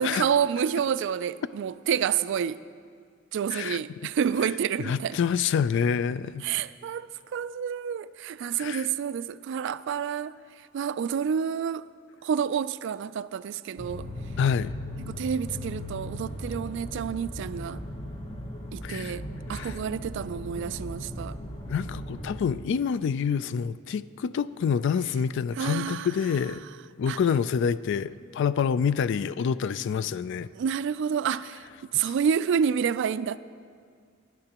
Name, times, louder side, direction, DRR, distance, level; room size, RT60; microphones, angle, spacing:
voice 1, 0.0-2.6 3.3-5.2 6.4-10.3 10.7-11.9 12.2-14.1 15.1-17.8 18.7-19.2 19.5-21.3 25.6-26.1 27.1-27.2 30.5-31.6 31.9-33.4, right 7 dB, 60° right, 0.3 m, -28 dB
voice 2, 4.8-6.4 8.6-8.9 14.4-14.7 18.8-19.2 19.5-19.8 21.7-26.6 27.0-30.5 31.9-32.1, left 7 dB, 60° left, 0.3 m, -27 dB
sound 1, 13.8-22.4, left 1 dB, 30° left, 1.0 m, -37 dB
18.5 x 10.5 x 2.9 m
head